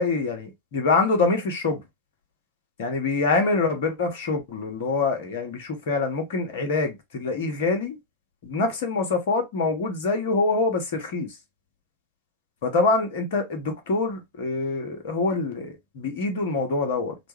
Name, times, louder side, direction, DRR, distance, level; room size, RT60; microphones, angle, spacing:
voice 1, 0.0-1.8 2.8-8.0 8.4-11.4 12.6-17.2, left 3 dB, 55° left, 1.2 m, -25 dB
4.1 x 2.4 x 3.1 m
figure-of-eight pair, 90°, 0 cm